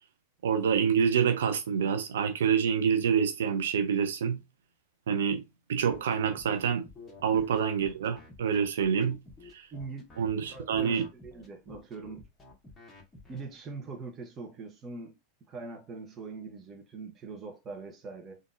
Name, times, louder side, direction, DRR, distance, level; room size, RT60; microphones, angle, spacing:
voice 1, 0.4-4.4 5.1-5.4 5.7-6.9 7.2-9.2 9.5-9.7 10.2-11.0, right 7 dB, 70° right, 0.4 m, -27 dB
sound 1, 5.9-13.4, left 3 dB, 20° left, 1.3 m, -50 dB
voice 2, 9.7-10.1 10.5-12.2 13.3-15.1 15.5-18.4, right 4 dB, 30° right, 0.9 m, -42 dB
3.7 x 2.6 x 2.4 m
hypercardioid pair, 90°, 0 cm